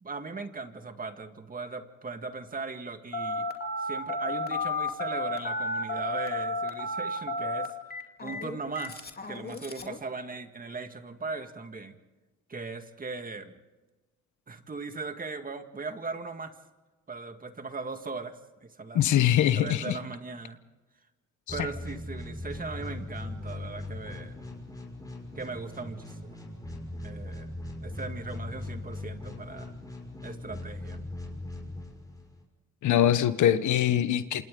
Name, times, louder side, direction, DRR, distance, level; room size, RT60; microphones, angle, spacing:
voice 1, 0.0-3.5 3.8-7.7 8.2-12.0 12.5-13.5 14.5-16.5 17.1-19.0 19.5-20.6 21.5-24.4 25.4-26.4 27.0-27.5 27.8-29.7 30.2-31.0, right 4 dB, 30° right, 7 dB, 1.9 m, -39 dB
Telephone, 3.1-10.0, left 1 dB, 30° left, 2.5 m, -32 dB
voice 2, 18.9-20.0 21.5-21.6 32.8-34.4, left 11 dB, 75° left, 12 dB, 1.1 m, -23 dB
sound 1, 21.5-32.4, left 2 dB, 10° left, 5.7 m, -40 dB
27.5 x 27.5 x 3.9 m, 1.2 s
cardioid pair, 90°, 30 cm